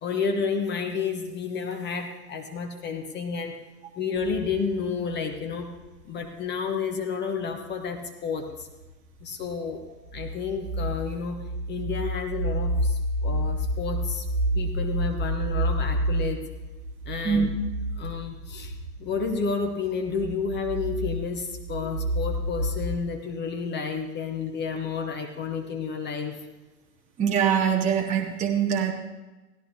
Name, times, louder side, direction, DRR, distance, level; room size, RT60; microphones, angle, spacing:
voice 1, 0.0-3.6 4.0-5.7 6.0-8.7 9.2-9.8 10.1-11.4 11.7-14.3 14.5-16.4 17.1-17.5 18.0-18.7 19.0-26.4, left 5 dB, 20° left, 4 dB, 1.2 m, -30 dB
sound 1, 4.2-6.0 7.3-7.9 8.3-23.0, right 1 dB, 5° left, 3.7 m, -30 dB
voice 2, 27.2-28.9, right 7 dB, 15° right, 2 dB, 0.8 m, -23 dB
17.0 x 14.0 x 2.9 m, 1.1 s
hypercardioid pair, 110°, 49 cm